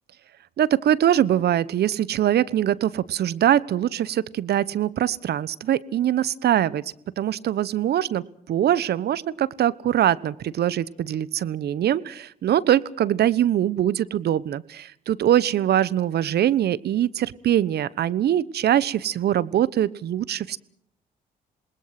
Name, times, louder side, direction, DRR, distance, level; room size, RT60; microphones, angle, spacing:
voice 1, 0.6-6.8 7.2-20.6, right 11 dB, 65° right, 20 dB, 1.1 m, -23 dB
27.5 x 20.5 x 6.0 m, 0.68 s
supercardioid pair, 55°, 18 cm